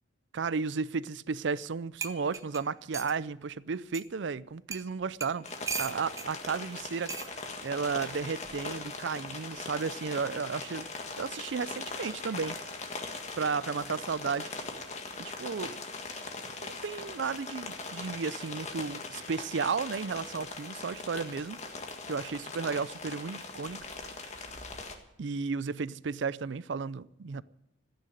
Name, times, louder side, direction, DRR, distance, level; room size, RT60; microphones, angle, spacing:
voice 1, 0.3-5.5 5.8-7.1 7.6-10.9 11.2-12.6 13.4-14.5 15.2-15.8 16.6-21.6 22.1-23.8 25.2-27.4, right 5 dB, 65° right, 0.5 m, -33 dB
sound 1, 1.6-1.7 2.0-3.2 3.9-4.1 4.7-4.9 5.2-6.3 7.1-7.3 8.4-8.7, right 5 dB, 15° right, 0.7 m, -37 dB
sound 2, 5.4-25.0, left 3 dB, 35° left, 1.7 m, -41 dB
14.5 x 9.5 x 9.2 m
head